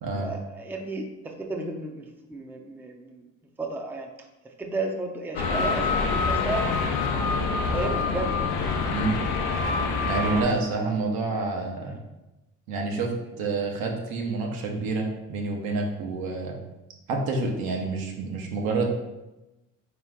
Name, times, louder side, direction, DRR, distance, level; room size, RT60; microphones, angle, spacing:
voice 1, 0.2-3.3 3.6-4.1 4.6-6.7 7.3-8.4 10.3-10.5 10.8-11.0, right 2 dB, 5° right, 2 dB, 0.5 m, -33 dB
sound 1, 5.3-10.4, left 4 dB, 90° left, 0.6 m, -26 dB
voice 2, 10.1-12.0 12.7-13.1 13.4-16.6 17.1-18.9, right 3 dB, 75° right, 1 dB, 0.9 m, -28 dB
3.7 x 3.0 x 3.4 m, 0.99 s
supercardioid pair, 75°, 36 cm